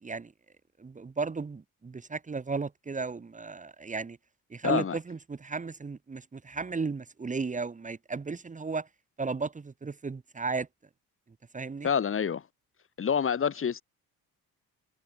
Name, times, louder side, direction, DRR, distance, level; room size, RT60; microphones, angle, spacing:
voice 1, 0.0-0.3 0.8-4.2 4.5-8.9 9.2-10.7 11.5-11.9, right 4 dB, 20° right, 1.8 m, -34 dB
voice 2, 4.6-5.0 11.8-12.4 13.0-13.8, left 7 dB, 35° left, 2.2 m, -27 dB
cardioid pair, 140°, 35 cm